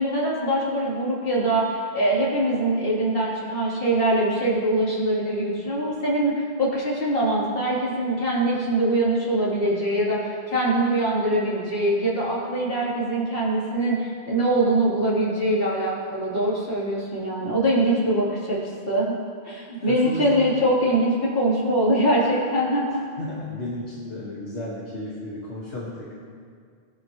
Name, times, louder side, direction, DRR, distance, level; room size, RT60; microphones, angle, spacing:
voice 1, 0.0-18.6 18.9-19.2 19.4-23.1, right 1 dB, 55° left, -7 dB, 3.8 m, -23 dB
voice 2, 19.8-20.4 23.2-26.2, left 1 dB, 80° left, -7 dB, 2.2 m, -34 dB
20.5 x 11.5 x 3.1 m, 2.1 s
omnidirectional pair, 1.1 m